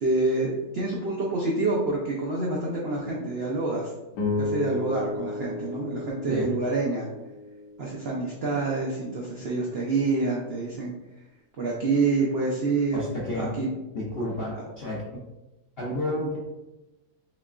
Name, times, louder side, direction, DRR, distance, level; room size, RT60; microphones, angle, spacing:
voice 1, 0.0-3.9 4.4-7.1 7.8-10.9 11.6-13.0 13.3-13.7, right 3 dB, 80° right, -3 dB, 0.5 m, -27 dB
sound 1, 4.1-8.6, left 3 dB, 85° left, 1.3 m, -33 dB
voice 2, 12.9-13.5 13.9-15.0 15.8-16.4, left 1 dB, 70° left, -4 dB, 0.5 m, -30 dB
5.5 x 2.3 x 2.4 m, 1.0 s
omnidirectional pair, 1.8 m